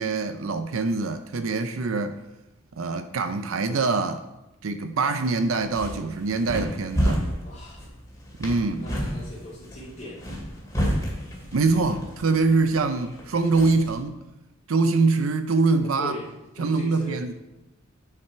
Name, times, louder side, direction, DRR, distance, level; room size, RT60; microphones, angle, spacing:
voice 1, 0.0-2.2 2.8-4.2 4.6-7.3 8.4-8.9 11.5-14.2 14.7-16.1 16.6-17.3, right 3 dB, 90° right, 0.6 m, -24 dB
sound 1, 5.5-14.0, equal, 15° left, 2.4 m, -31 dB
voice 2, 7.4-7.9 8.6-10.4 16.0-16.3 16.5-17.3, left 1 dB, 40° left, 2.2 m, -40 dB
10.5 x 5.8 x 4.5 m
head